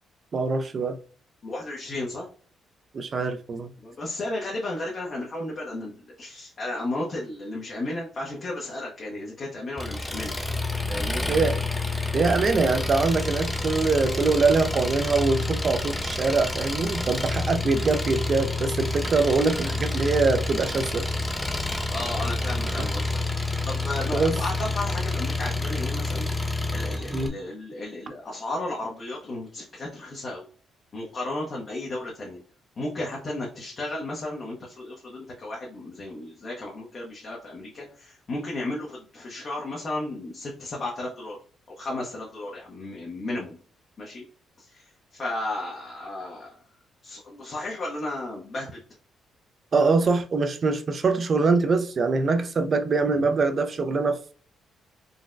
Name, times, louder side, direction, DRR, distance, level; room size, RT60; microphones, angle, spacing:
voice 1, 0.3-1.0 2.9-3.7 11.3-11.6 12.1-21.0 22.8-22.9 24.1-24.4 27.1-27.4 49.7-54.3, right 4 dB, 45° right, 0.4 m, -23 dB
voice 2, 1.4-2.3 3.8-10.3 10.9-11.2 21.9-23.4 23.6-26.3 26.7-30.5 30.9-32.4 32.8-41.4 41.8-43.6 44.0-44.2 44.6-46.5 47.0-48.8, left 2 dB, 45° left, 0.8 m, -34 dB
Engine, 9.8-27.3, left 2 dB, 10° left, 0.4 m, -28 dB
3.9 x 2.1 x 2.5 m
cardioid pair, 90°, 0 cm